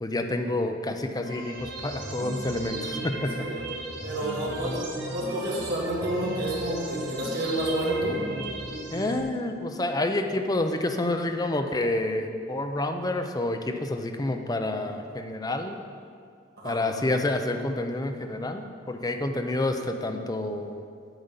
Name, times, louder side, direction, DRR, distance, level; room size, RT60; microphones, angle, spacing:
voice 1, 0.0-3.3 4.5-4.8 8.9-15.8 16.6-20.8, left 2 dB, 20° left, 6 dB, 0.6 m, -28 dB
sound 1, 1.2-9.2, right 2 dB, 85° right, 1.7 m, -36 dB
voice 2, 4.0-8.2 16.6-16.8, right 1 dB, 55° right, -4 dB, 2.0 m, -29 dB
8.9 x 5.5 x 8.1 m, 2.3 s
head